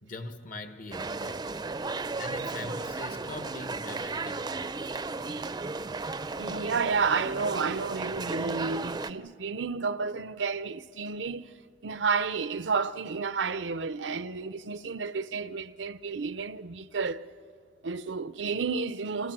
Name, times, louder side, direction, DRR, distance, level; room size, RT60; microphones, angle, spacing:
voice 1, 0.0-1.5 2.2-4.6 5.2-5.4, left 2 dB, 50° left, 1.4 m, -42 dB
sound 1, 0.9-9.1, right 3 dB, 25° right, 0.5 m, -35 dB
voice 2, 6.4-11.5 11.8-17.2 17.8-19.3, right 5 dB, 85° right, 0.6 m, -31 dB
29.0 x 27.0 x 6.1 m
head